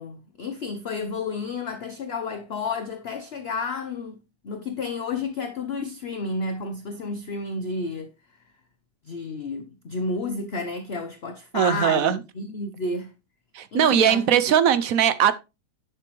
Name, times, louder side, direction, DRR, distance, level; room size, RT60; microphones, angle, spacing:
voice 1, 0.0-8.1 9.0-13.1 13.7-14.3, left 3 dB, 50° left, 0.8 m, -31 dB
voice 2, 11.5-12.2 13.5-15.3, right 9 dB, 65° right, 0.9 m, -20 dB
10.5 x 6.8 x 3.0 m
omnidirectional pair, 1.9 m